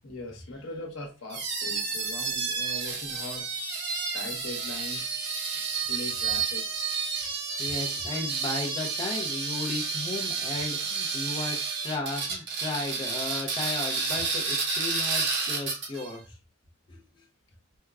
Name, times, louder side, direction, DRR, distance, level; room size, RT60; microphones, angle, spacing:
voice 1, 0.0-3.6 4.1-5.1 5.8-6.8 7.5-7.7, left 2 dB, 70° left, 1 dB, 1.0 m, -40 dB
sound 1, 1.3-16.1, right 5 dB, 55° right, 0.8 m, -30 dB
voice 2, 7.6-16.4 16.9-17.2, left 2 dB, 20° left, -2 dB, 0.5 m, -35 dB
4.6 x 2.1 x 2.3 m, 0.30 s
head